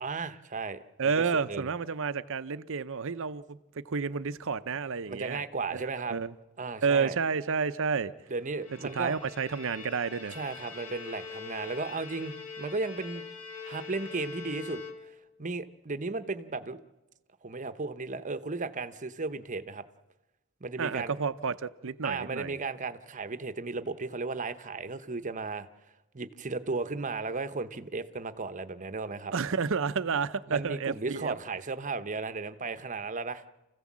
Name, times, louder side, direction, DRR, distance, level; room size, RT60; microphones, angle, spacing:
voice 1, 0.0-1.7 5.1-6.2 6.6-7.2 8.3-9.1 10.3-13.3 13.6-14.8 15.1-15.2 15.4-16.8 17.4-19.8 20.6-21.2 22.0-25.7 26.1-29.3 30.5-33.4, right 3 dB, 35° right, 0.9 m, -35 dB
voice 2, 1.0-5.4 5.7-5.8 6.1-6.3 6.8-8.1 8.9-10.4 20.8-22.6 29.3-31.3, right 5 dB, 60° right, 0.7 m, -30 dB
Bowed string instrument, 8.4-15.4, left 5 dB, 85° left, 3.2 m, -43 dB
28.5 x 15.5 x 7.4 m
head